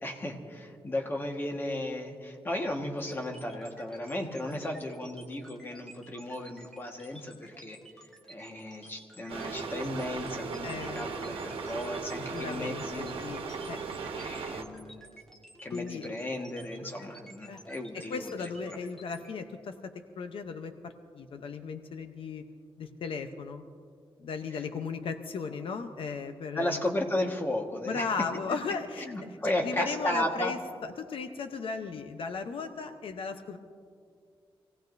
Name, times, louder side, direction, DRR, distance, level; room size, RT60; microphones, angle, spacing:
voice 1, 0.0-7.8 8.3-13.2 14.1-15.1 15.6-18.8 24.5-24.6 26.5-28.1 29.0-30.5, left 1 dB, 20° left, 2 dB, 1.5 m, -35 dB
sound 1, 3.0-19.3, right 1 dB, 5° left, 1.4 m, -53 dB
sound 2, 9.3-14.6, right 4 dB, 75° right, 1.2 m, -37 dB
voice 2, 10.6-11.1 12.3-13.8 15.7-16.2 17.5-17.6 17.9-22.4 22.8-23.6 24.2-26.8 27.9-33.6, left 5 dB, 70° left, 7 dB, 0.8 m, -36 dB
26.0 x 17.5 x 2.6 m, 2.3 s
wide cardioid pair, 150°, 9 cm